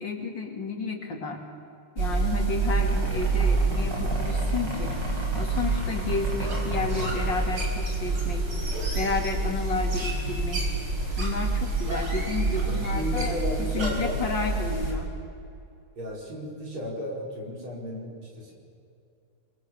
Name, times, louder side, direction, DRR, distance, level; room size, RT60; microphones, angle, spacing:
voice 1, 0.0-1.4 2.0-5.0 5.3-10.7 11.2-15.1, left 3 dB, 55° left, 2 dB, 3.3 m, -32 dB
sound 1, 2.0-14.9, right 3 dB, 55° right, 5.1 m, -27 dB
voice 2, 12.6-14.2 16.0-18.5, equal, 70° right, -1 dB, 5.4 m, -34 dB
28.0 x 22.0 x 7.0 m, 2.6 s
omnidirectional pair, 2.4 m